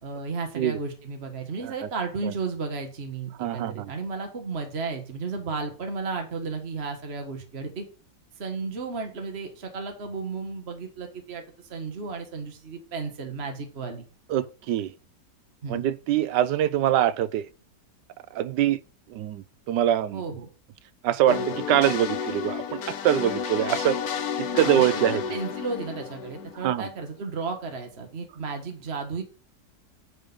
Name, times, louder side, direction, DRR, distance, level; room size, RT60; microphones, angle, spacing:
voice 1, 0.0-7.8 8.4-14.0 15.6-15.9 20.1-20.5 21.3-21.6 24.5-29.2, right 4 dB, 40° right, 1.7 m, -34 dB
voice 2, 3.4-3.9 14.3-14.9 15.7-17.5 18.3-18.8 19.1-20.2 21.0-24.0 24.4-25.2 26.6-26.9, right 11 dB, 85° right, 1.3 m, -24 dB
sound 1, 21.3-27.0, left 7 dB, 65° left, 1.3 m, -31 dB
9.8 x 5.2 x 5.5 m
omnidirectional pair, 1.8 m